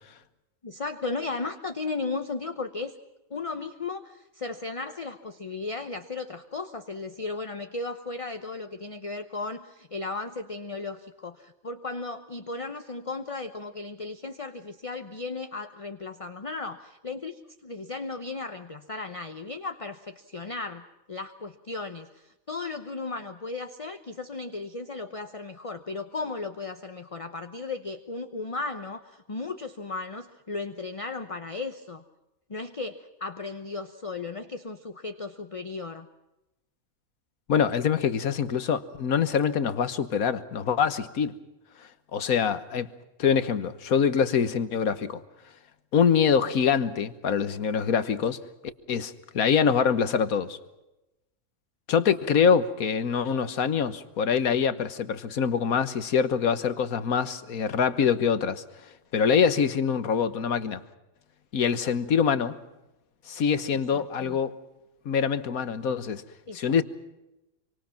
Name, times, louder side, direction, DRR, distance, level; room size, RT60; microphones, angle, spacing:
voice 1, 0.6-3.0 3.3-32.0 32.5-36.1 63.9-64.4 66.5-66.8, left 3 dB, 30° left, 8 dB, 0.9 m, -35 dB
voice 2, 37.5-41.3 42.1-42.9 43.2-45.2 45.9-48.4 48.9-50.6 51.9-58.6 59.1-60.8 61.5-62.6 63.3-64.6 65.0-66.2 66.5-66.8, left 7 dB, 80° left, 13 dB, 1.6 m, -24 dB
26.5 x 24.5 x 5.9 m, 0.96 s
omnidirectional pair, 1.5 m